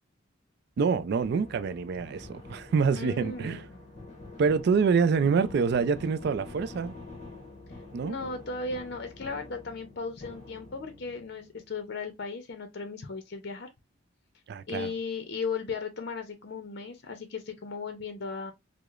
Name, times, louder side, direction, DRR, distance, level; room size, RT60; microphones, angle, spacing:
voice 1, 0.8-3.6 4.4-6.9 7.9-8.2 14.5-14.9, right 5 dB, 55° right, 0.3 m, -26 dB
sound 1, 0.9-11.9, left 2 dB, 35° left, 0.9 m, -47 dB
voice 2, 2.9-3.7 8.0-13.7 14.7-18.5, left 4 dB, 55° left, 0.6 m, -36 dB
4.7 x 2.0 x 2.4 m
head